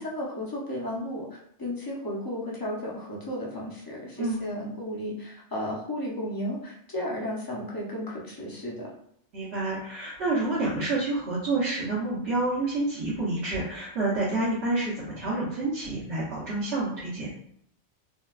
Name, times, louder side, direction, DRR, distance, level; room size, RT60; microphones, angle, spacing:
voice 1, 0.0-8.9, left 1 dB, 25° left, -3 dB, 0.5 m, -34 dB
voice 2, 9.3-17.3, right 2 dB, 70° right, -10 dB, 1.1 m, -28 dB
3.8 x 2.2 x 2.3 m, 0.69 s
omnidirectional pair, 1.2 m